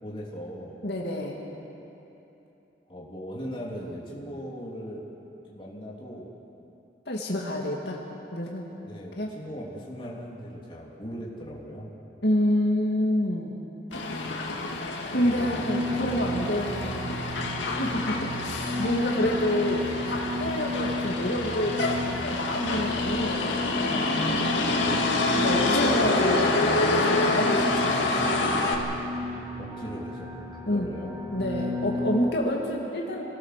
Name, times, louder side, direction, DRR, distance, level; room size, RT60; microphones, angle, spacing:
voice 1, 0.0-0.8 2.9-5.1 5.5-6.3 8.8-11.9 15.1-15.6 24.8-25.1 29.6-30.3 30.7-31.2, equal, 30° left, -4 dB, 3.1 m, -39 dB
voice 2, 0.8-1.4 7.1-8.0 8.3-8.7 9.2-9.4 12.2-13.5 15.1-17.3 17.6-18.2 18.5-21.8 22.2-24.2 25.4-28.4 30.7-30.9 31.3-33.2, left 1 dB, 65° left, -2 dB, 2.4 m, -28 dB
Motor vehicle (road), 13.9-28.7, left 2 dB, 90° left, 2.3 m, -27 dB
sound 1, 15.2-32.3, left 2 dB, 15° right, 1.6 m, -33 dB
26.0 x 19.0 x 6.8 m, 3.0 s
head